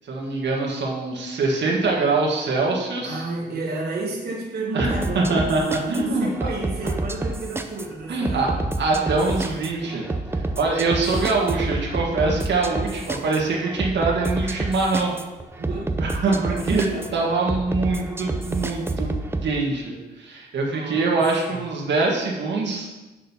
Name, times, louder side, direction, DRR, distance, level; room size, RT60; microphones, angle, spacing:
voice 1, 0.0-3.2 4.7-6.5 8.1-8.5 8.8-10.0 10.3-15.1 16.0-16.8 17.1-19.1 19.4-22.9, right 3 dB, 80° right, -2 dB, 1.7 m, -24 dB
voice 2, 3.0-5.4 5.9-8.7 15.5-15.9 16.3-17.3 20.7-21.1, right 2 dB, 60° right, -3 dB, 1.5 m, -31 dB
sound 1, 4.8-19.5, right 2 dB, 15° right, 0.5 m, -29 dB
6.5 x 6.3 x 5.6 m, 1.1 s
wide cardioid pair, 165°, 18 cm